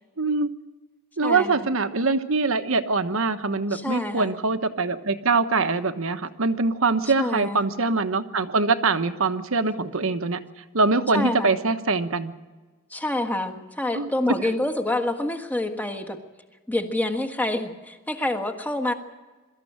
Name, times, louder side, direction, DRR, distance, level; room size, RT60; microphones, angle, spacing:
voice 1, 0.2-0.5 1.2-10.4 10.7-12.3 13.9-14.1, right 3 dB, 70° right, 9 dB, 1.2 m, -23 dB
voice 2, 1.2-1.7 3.7-4.4 7.0-7.6 11.1-11.5 12.9-16.2 16.7-18.9, left 1 dB, 10° left, 6 dB, 1.5 m, -27 dB
23.0 x 14.0 x 8.9 m, 1.3 s
head